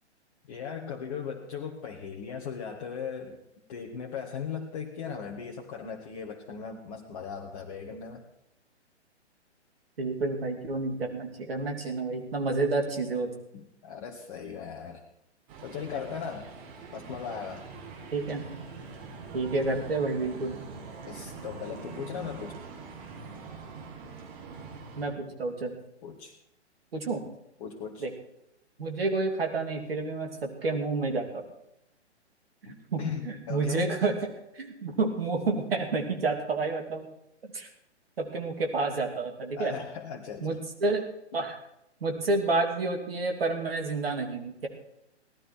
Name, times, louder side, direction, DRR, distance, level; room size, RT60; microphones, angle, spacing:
voice 1, 0.5-3.4 3.7-8.2 13.5-15.0 15.6-16.5 16.9-17.7 21.0-22.6 26.0-26.3 27.6-28.0 32.6-34.2 39.6-40.6, left 7 dB, 35° left, 0 dB, 1.5 m, -38 dB
voice 2, 10.0-13.3 18.1-18.4 19.3-20.6 25.0-25.8 26.9-27.2 28.0-28.1 28.8-31.4 32.9-34.1 34.6-37.1 37.5-37.7 38.2-39.7 40.4-40.6 40.8-41.0 41.3-41.6 42.0-44.7, right 3 dB, 55° right, 4 dB, 2.9 m, -29 dB
sound 1, 15.5-25.1, right 4 dB, 25° right, 3.7 m, -44 dB
17.5 x 12.5 x 4.6 m, 0.80 s
figure-of-eight pair, 125°, 34 cm